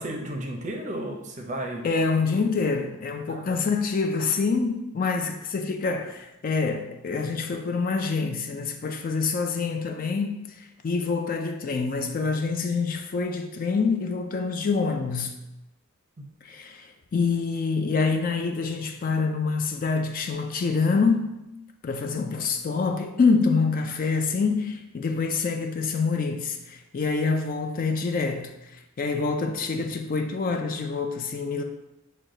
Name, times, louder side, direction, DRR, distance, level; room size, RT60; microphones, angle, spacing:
voice 1, 0.0-1.9 3.3-3.6, right 1 dB, 35° right, 0.6 m, -33 dB
voice 2, 1.8-15.3 16.4-21.4 21.8-31.6, left 4 dB, 40° left, 0.3 m, -26 dB
6.4 x 2.2 x 3.7 m
head